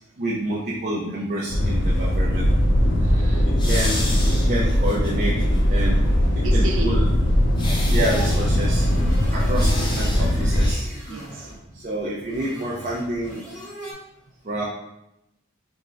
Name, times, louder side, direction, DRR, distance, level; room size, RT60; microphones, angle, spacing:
voice 1, 0.2-2.5 3.6-4.0 4.3-5.4 5.7-6.0 6.3-7.1 7.9-8.9 9.3-10.9 11.7-13.4 14.4-14.6, right 1 dB, 40° right, -5 dB, 0.5 m, -28 dB
sound 1, 1.5-10.7, equal, 65° left, 0.6 m, -20 dB
voice 2, 3.0-3.7 6.4-6.9 11.1-11.5, right 1 dB, 80° right, 0 dB, 0.7 m, -33 dB
sound 2, 3.6-5.6 6.0-6.1 7.6-8.6 9.5-10.3 10.5-10.8, left 1 dB, 25° left, 0.6 m, -32 dB
sound 3, 8.1-13.9, right 1 dB, 5° left, 0.9 m, -39 dB
3.5 x 2.0 x 3.9 m, 0.87 s
head